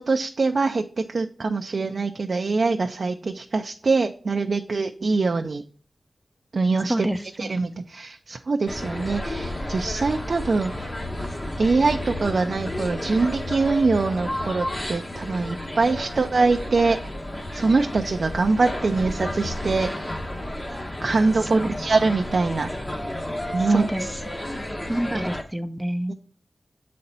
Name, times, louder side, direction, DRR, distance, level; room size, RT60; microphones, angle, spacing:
voice 1, 0.0-5.6 6.5-7.1 7.4-10.9 11.6-17.1 17.5-19.9 21.0-22.7 23.5-23.9 26.1-26.2, right 3 dB, 65° right, 5 dB, 0.4 m, -23 dB
voice 2, 6.9-7.7 21.5-21.7 23.7-24.1 24.9-26.1, right 1 dB, 15° right, 9 dB, 0.5 m, -28 dB
sound 1, 8.7-25.4, left 1 dB, 25° left, 1.0 m, -32 dB
7.6 x 4.2 x 4.0 m, 0.43 s
wide cardioid pair, 70°, 0 cm